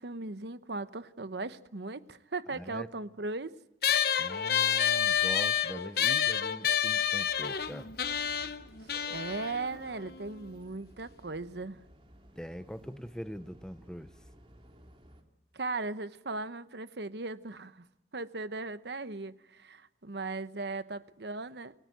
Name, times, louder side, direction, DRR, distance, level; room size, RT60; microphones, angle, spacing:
voice 1, 0.0-3.5 8.8-11.8 15.5-17.9 18.1-21.7, right 3 dB, 75° right, 1.0 m, -38 dB
voice 2, 2.5-2.9 4.2-7.9 12.4-14.1, equal, 5° left, 0.8 m, -42 dB
sound 1, 3.8-10.6, left 9 dB, 60° left, 1.0 m, -29 dB
sound 2, 7.3-15.2, equal, 30° right, 3.2 m, -56 dB
29.0 x 17.5 x 9.2 m
head